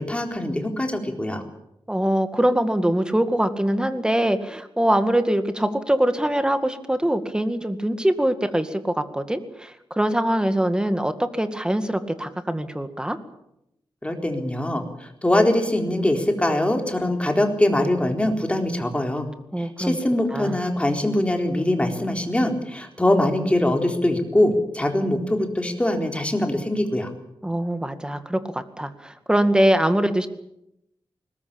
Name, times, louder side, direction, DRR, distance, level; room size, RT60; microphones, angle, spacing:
voice 1, 0.0-1.4 14.0-19.3 19.6-27.1, left 1 dB, 15° left, 4 dB, 4.0 m, -23 dB
voice 2, 1.9-13.2 19.5-20.0 20.3-20.6 27.4-30.3, right 1 dB, 10° right, 9 dB, 2.1 m, -23 dB
21.5 x 20.0 x 8.8 m, 0.82 s
wide cardioid pair, 105°, 9 cm